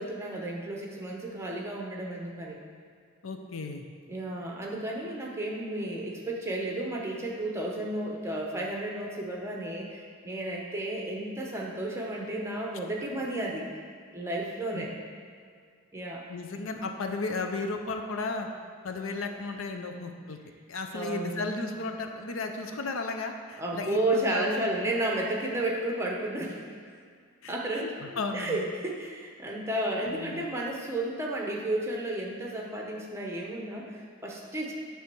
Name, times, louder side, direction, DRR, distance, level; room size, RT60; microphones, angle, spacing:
voice 1, 0.0-2.6 4.1-13.7 14.1-14.9 15.9-16.3 20.9-21.5 23.6-26.6 27.5-34.7, right 1 dB, 15° right, -2 dB, 0.9 m, -32 dB
voice 2, 3.2-3.8 14.4-14.9 16.3-18.5 18.8-20.4 20.7-24.7 27.4-28.7 30.0-30.5, left 3 dB, 70° left, 5 dB, 0.6 m, -34 dB
9.4 x 3.4 x 6.0 m, 2.1 s
head